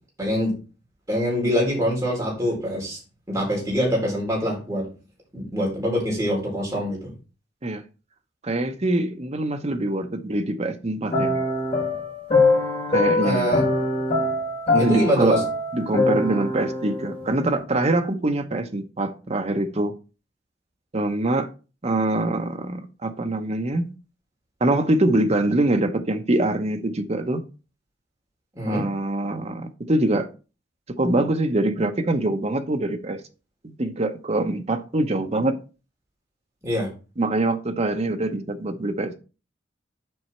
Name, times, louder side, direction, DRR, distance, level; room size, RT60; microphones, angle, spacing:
voice 1, 0.2-0.6 1.1-3.0 3.3-4.9 5.3-7.1 13.2-13.7 14.7-15.4 28.6-28.8 36.6-36.9, equal, 15° right, 4.2 m, -24 dB
voice 2, 8.4-11.4 12.9-13.5 14.7-15.4 15.7-19.9 20.9-21.5 21.8-23.9 24.6-27.4 28.7-30.3 30.9-33.2 33.6-35.6 37.2-39.2, right 2 dB, 35° right, 0.8 m, -24 dB
sound 1, 11.1-17.5, left 2 dB, 35° left, 3.8 m, -23 dB
7.8 x 5.5 x 4.3 m
head